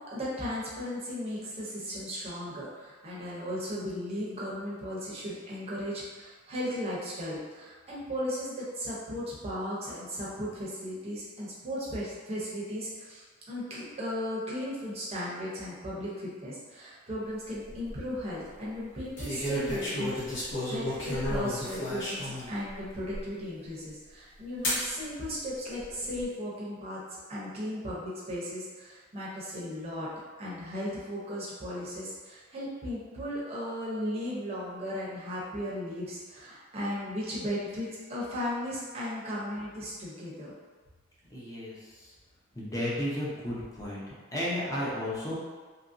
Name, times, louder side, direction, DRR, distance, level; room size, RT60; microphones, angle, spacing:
voice 1, 0.0-20.2 20.7-27.0 27.3-30.1 30.4-40.5, equal, 30° right, -7 dB, 0.6 m, -36 dB
sound 1, 17.5-17.9 19.2-22.5 23.1-23.2 24.6-24.9 25.7-26.2, left 1 dB, 65° left, 0.9 m, -32 dB
voice 2, 41.3-42.1 42.5-44.0 44.3-45.4, left 1 dB, 15° left, -7 dB, 0.7 m, -33 dB
2.9 x 2.5 x 2.5 m, 1.4 s
head